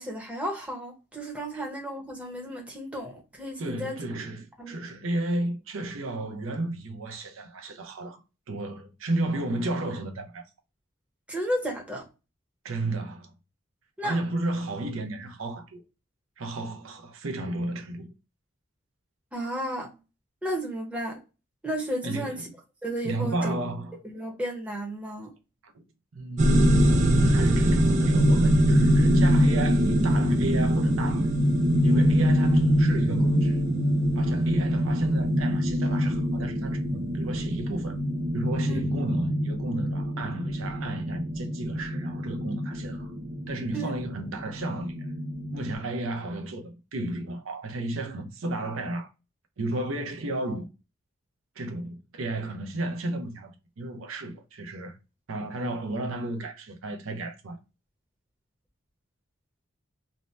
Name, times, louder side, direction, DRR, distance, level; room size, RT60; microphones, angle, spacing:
voice 1, 0.0-4.0 4.6-4.7 11.3-12.1 14.0-14.2 19.3-19.9 20.4-21.2 21.6-22.4 22.8-23.5 24.0-25.3 38.6-38.8 43.7-43.9, equal, 5° right, 0.7 m, -33 dB
voice 2, 3.6-8.2 8.5-10.4 12.6-13.3 14.0-15.8 16.4-18.1 22.0-22.5 23.0-24.0 25.6-25.8 26.1-31.3 31.8-33.6 34.2-38.0 38.3-43.1 43.5-45.1 45.5-49.1 49.6-50.7 51.6-55.0 55.3-57.6, right 2 dB, 90° right, 0.6 m, -33 dB
sound 1, 26.4-45.7, equal, 35° right, 0.4 m, -24 dB
2.7 x 2.1 x 3.1 m
head